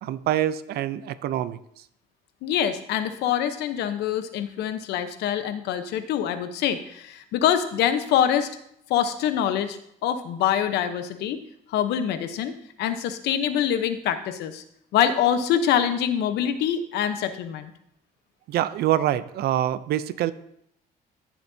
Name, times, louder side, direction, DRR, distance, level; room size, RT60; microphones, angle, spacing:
voice 1, 0.0-1.6 18.5-20.3, right 12 dB, 70° right, 15 dB, 0.6 m, -25 dB
voice 2, 2.4-8.5 8.9-11.4 11.7-14.6 14.9-17.7, left 9 dB, 80° left, 10 dB, 0.9 m, -25 dB
15.0 x 7.4 x 2.8 m, 0.73 s
cardioid pair, 110°, 17 cm